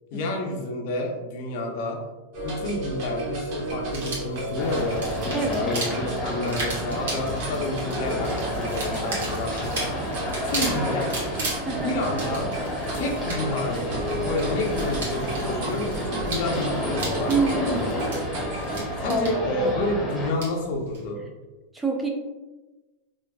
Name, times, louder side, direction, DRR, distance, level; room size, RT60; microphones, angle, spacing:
voice 1, 0.1-2.0 2.4-9.9 10.4-11.2 11.8-12.5 12.9-17.7 19.0-21.2, left 2 dB, 60° left, 1 dB, 0.7 m, -29 dB
sound 1, 2.3-18.8, right 1 dB, 55° right, 1.0 m, -34 dB
sound 2, 3.9-21.1, right 2 dB, 80° right, 1.3 m, -37 dB
sound 3, 4.5-20.3, equal, 15° left, 0.9 m, -30 dB
voice 2, 5.3-5.7 8.9-9.2 11.6-12.0 17.3-17.9 19.1-19.8 21.7-22.1, right 3 dB, 10° right, 1 dB, 0.5 m, -27 dB
3.6 x 2.5 x 2.3 m, 1.2 s
hypercardioid pair, 120°, 0 cm